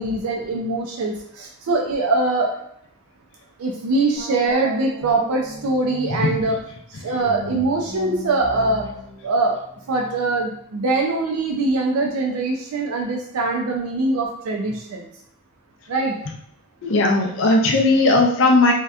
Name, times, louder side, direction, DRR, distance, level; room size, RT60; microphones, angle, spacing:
voice 1, 0.0-2.6 3.6-6.6 7.0-8.9 9.2-9.6 9.9-15.1 15.9-16.1, right 2 dB, 90° right, 0 dB, 0.4 m, -22 dB
sound 1, 4.1-6.4 7.2-10.5, right 1 dB, 30° right, 0.7 m, -37 dB
voice 2, 16.8-18.7, left 2 dB, 60° left, 1 dB, 0.4 m, -17 dB
2.7 x 2.1 x 2.3 m, 0.71 s
head